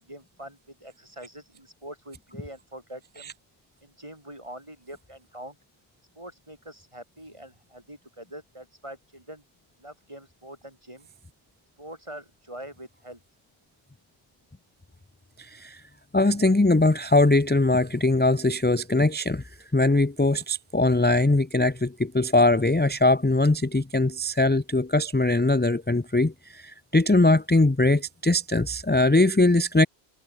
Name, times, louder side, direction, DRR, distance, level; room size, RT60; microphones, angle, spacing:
voice 1, 0.0-3.3 3.8-5.6 6.2-9.4 9.8-11.1 11.8-13.2, right 1 dB, 30° right, 7.2 m, -44 dB
voice 2, 15.4-15.8 16.1-19.4 19.7-29.9, left 2 dB, 15° left, 0.4 m, -21 dB
omnidirectional pair, 1.1 m